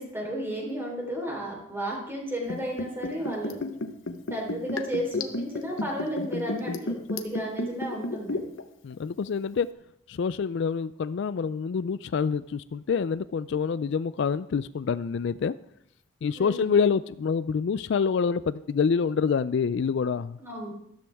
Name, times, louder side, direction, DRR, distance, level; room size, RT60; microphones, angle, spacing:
voice 1, 0.0-3.6 4.3-8.4 16.3-16.7 20.4-20.7, equal, 10° right, -2 dB, 3.8 m, -33 dB
Liquid, 2.5-8.6 8.9-9.0, left 2 dB, 80° left, 1.0 m, -31 dB
voice 2, 8.8-9.7 10.1-15.5 16.2-20.4, left 6 dB, 60° left, 16 dB, 0.3 m, -26 dB
13.0 x 13.0 x 3.5 m, 0.76 s
head